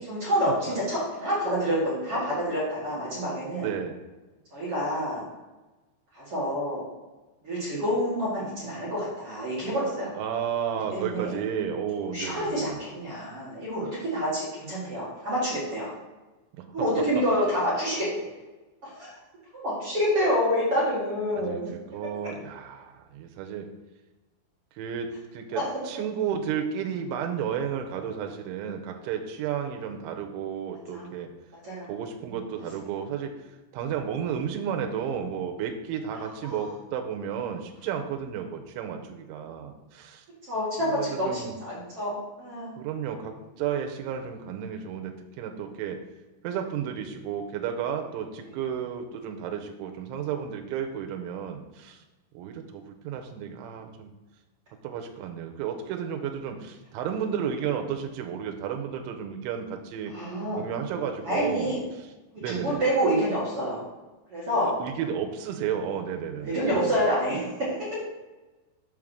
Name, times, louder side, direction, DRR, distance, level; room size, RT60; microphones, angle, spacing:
voice 1, 0.0-3.7 4.5-5.2 6.1-6.8 7.4-10.1 10.9-11.4 12.1-15.9 16.7-18.1 18.9-19.2 19.5-21.7 25.5-25.6 30.9-31.0 31.6-31.9 32.7-32.8 36.4-36.7 40.5-42.8 60.1-60.6 61.2-61.8 62.3-63.8 64.3-64.7 66.4-68.0, equal, 45° right, -8 dB, 2.1 m, -28 dB
voice 2, 3.5-4.0 10.1-12.8 16.6-16.7 21.3-23.7 24.8-31.3 31.9-40.2 40.8-41.5 42.7-46.0 46.4-52.0 52.3-54.1 54.8-60.1 60.6-61.7 62.4-62.8 64.6-66.9, right 8 dB, 85° right, 4 dB, 3.0 m, -32 dB
7.4 x 3.7 x 6.3 m, 1.1 s
omnidirectional pair, 5.4 m